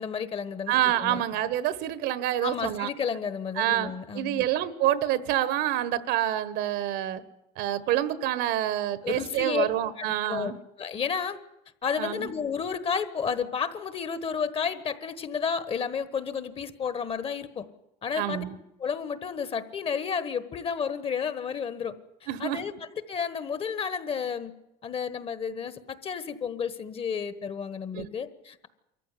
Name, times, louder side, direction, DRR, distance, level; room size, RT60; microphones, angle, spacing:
voice 1, 0.0-1.2 2.4-4.4 9.0-9.6 10.0-10.5 10.8-11.4 11.8-17.7 18.0-18.4 18.8-24.5 24.8-28.7, left 6 dB, 30° left, 14 dB, 1.3 m, -31 dB
voice 2, 0.7-2.9 3.6-7.2 7.6-10.6 12.0-12.3 18.2-18.6 22.3-22.6 27.9-28.1, right 12 dB, 70° right, 16 dB, 1.3 m, -27 dB
23.0 x 14.5 x 9.9 m, 0.88 s
cardioid pair, 135°, 18 cm